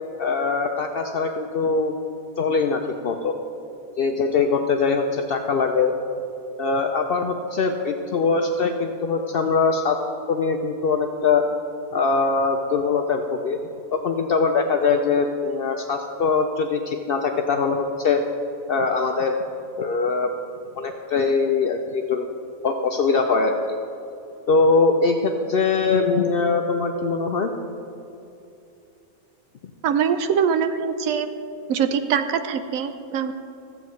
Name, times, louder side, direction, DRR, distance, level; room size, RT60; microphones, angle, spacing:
voice 1, 0.2-2.0 2.4-3.4 4.0-5.9 6.6-10.0 10.3-11.4 11.9-13.6 13.9-18.2 18.7-19.4 19.8-20.3 20.8-22.3 22.6-23.5 24.5-27.5, left 4 dB, 70° left, 4 dB, 0.5 m, -22 dB
voice 2, 29.8-31.3 31.7-33.3, right 7 dB, 75° right, 9 dB, 1.0 m, -23 dB
15.0 x 8.0 x 3.1 m, 2.8 s
omnidirectional pair, 1.5 m